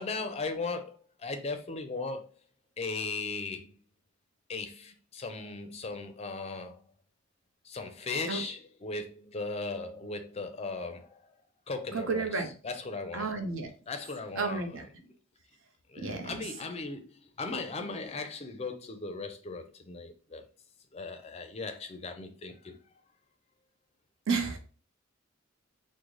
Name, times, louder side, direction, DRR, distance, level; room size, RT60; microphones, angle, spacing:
voice 1, 0.0-2.3 2.8-3.7 4.5-6.8 7.6-11.2 11.7-13.3 13.9-15.1 15.9-20.5 20.9-22.8, left 3 dB, 30° left, 0.4 m, -37 dB
voice 2, 11.9-12.5 13.1-13.7 14.4-14.8 16.0-16.3 24.3-24.6, right 4 dB, 70° right, 0.7 m, -31 dB
3.7 x 2.1 x 3.1 m
head